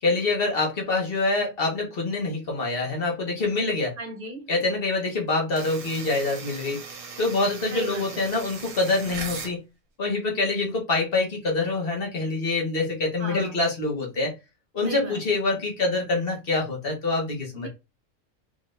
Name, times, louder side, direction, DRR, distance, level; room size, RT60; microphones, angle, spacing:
voice 1, 0.0-4.0 4.5-6.8 7.2-9.6 10.0-14.3 14.7-17.7, left 3 dB, 45° left, 1.5 m, -25 dB
voice 2, 4.0-4.5 7.7-8.2 13.2-13.6 14.8-15.2 17.5-17.7, right 3 dB, 45° right, 1.1 m, -36 dB
sound 1, 5.6-9.6, right 5 dB, 70° right, 1.3 m, -39 dB
3.9 x 2.8 x 3.2 m
omnidirectional pair, 1.4 m